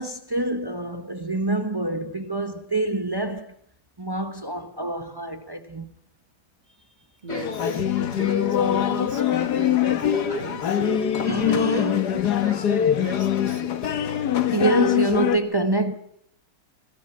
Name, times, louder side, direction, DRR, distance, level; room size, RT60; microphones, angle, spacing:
voice 1, 0.0-3.5 4.0-5.9 11.2-12.0 14.5-15.9, right 2 dB, 35° right, 0.3 m, -26 dB
voice 2, 7.2-11.1 11.4-12.0 12.4-13.8, right 2 dB, 20° right, 1.9 m, -37 dB
sound 1, 7.3-15.4, left 9 dB, 55° left, 1.6 m, -23 dB
26.0 x 15.0 x 7.7 m
omnidirectional pair, 2.3 m